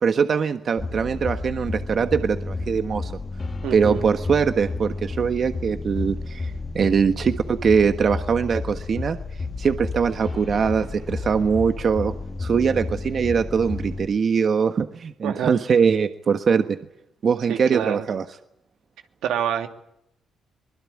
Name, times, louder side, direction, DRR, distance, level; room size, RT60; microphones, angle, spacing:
voice 1, 0.0-3.1 3.7-9.2 9.6-12.1 12.4-16.8 17.2-18.2, right 6 dB, 50° right, 8 dB, 1.4 m, -22 dB
sound 1, 0.8-14.1, left 3 dB, 30° left, 2.3 m, -31 dB
voice 2, 3.6-4.0 15.2-15.5 17.5-18.0 19.2-19.7, right 9 dB, 85° right, 5 dB, 2.5 m, -27 dB
24.0 x 20.5 x 8.6 m, 0.77 s
cardioid pair, 90°, 0 cm